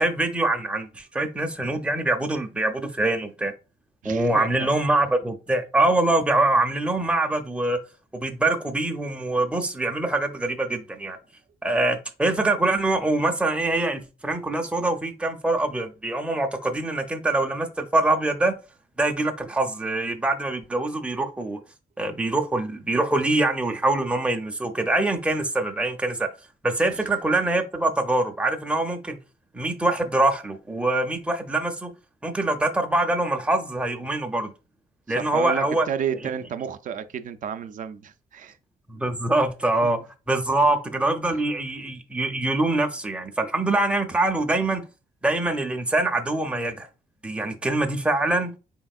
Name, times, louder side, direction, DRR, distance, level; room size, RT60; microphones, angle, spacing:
voice 1, 0.0-3.5 4.0-7.8 8.1-11.2 11.6-18.5 19.0-21.6 22.0-26.3 26.6-29.2 29.5-31.9 32.2-34.5 35.1-35.9 38.9-40.0 40.3-44.8 45.2-46.9 47.2-48.5, right 2 dB, 5° right, 0.6 m, -24 dB
voice 2, 4.0-4.7 35.2-38.6 39.8-40.0, right 8 dB, 55° right, 0.4 m, -31 dB
4.4 x 3.4 x 2.4 m
cardioid pair, 110°, 16 cm